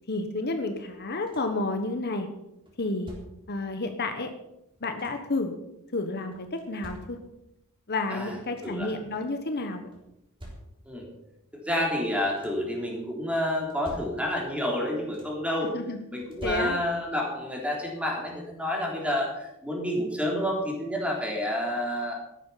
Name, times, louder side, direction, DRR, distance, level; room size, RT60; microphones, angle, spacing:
voice 1, 0.1-2.3 2.8-3.1 3.5-4.3 4.8-5.5 5.9-7.2 7.9-9.9 15.7-16.0 16.4-16.8, left 2 dB, 50° left, 6 dB, 1.2 m, -30 dB
sound 1, 0.9-1.7 2.7-3.6 4.5-5.4 6.3-7.5 8.1-8.2 8.4-9.0 9.9-11.1 12.0-12.8 13.5-14.5 14.8-15.6 16.2-17.2 18.5-18.6 19.1-19.3, right 1 dB, 25° right, 3.8 m, -47 dB
voice 2, 8.6-8.9 10.9-11.1 11.5-15.7 16.1-22.1, left 1 dB, 5° right, -1 dB, 3.7 m, -29 dB
13.5 x 11.5 x 5.7 m, 0.87 s
head